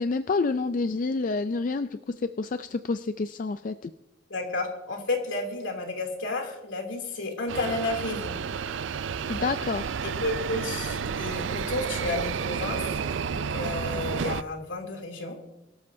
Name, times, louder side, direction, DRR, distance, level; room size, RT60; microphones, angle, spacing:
voice 1, 0.0-3.9 9.3-9.9, left 3 dB, 45° left, 10 dB, 0.4 m, -28 dB
voice 2, 4.3-8.4 9.2-9.4 10.2-12.8 13.3-15.4, left 2 dB, 75° left, 2 dB, 2.9 m, -31 dB
sound 1, 7.5-14.4, right 6 dB, 75° right, 0.5 m, -31 dB
23.0 x 13.0 x 2.7 m, 0.94 s
head